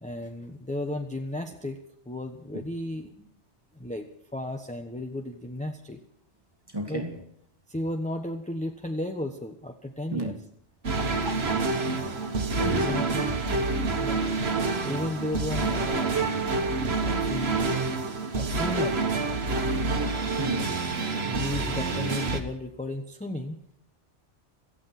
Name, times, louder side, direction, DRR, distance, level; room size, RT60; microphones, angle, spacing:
voice 1, 0.0-1.8 2.1-3.3 3.7-6.0 6.9-7.0 7.7-10.3 12.7-13.3 14.0-14.2 14.8-16.4 16.9-17.6 18.3-19.0 21.3-23.6, left 1 dB, 5° left, 1.0 m, -34 dB
voice 2, 6.7-7.2 10.1-10.3 11.2-11.3 12.1-12.3 12.6-13.1 20.4-20.8, right 1 dB, 20° right, 2.1 m, -31 dB
sound 1, 10.8-22.4, right 3 dB, 60° right, 1.7 m, -27 dB
17.5 x 14.0 x 5.9 m
omnidirectional pair, 1.2 m